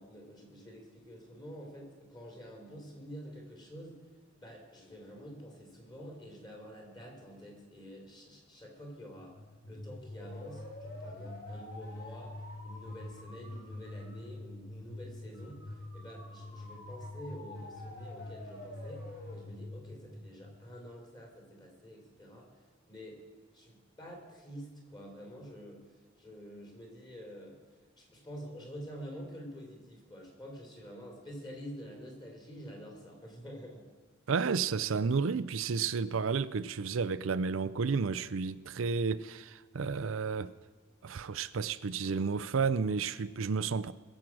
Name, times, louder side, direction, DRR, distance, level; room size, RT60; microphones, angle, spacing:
voice 1, 0.0-4.0 4.4-9.3 9.6-12.3 12.6-22.5 22.9-23.2 23.5-27.6 28.0-33.9, equal, 20° left, 3.8 m, -48 dB
sound 1, 9.1-21.0, left 1 dB, 55° left, 4.2 m, -45 dB
voice 2, 34.3-40.5 41.0-43.9, right 5 dB, 85° right, 0.5 m, -31 dB
21.5 x 7.6 x 6.1 m
head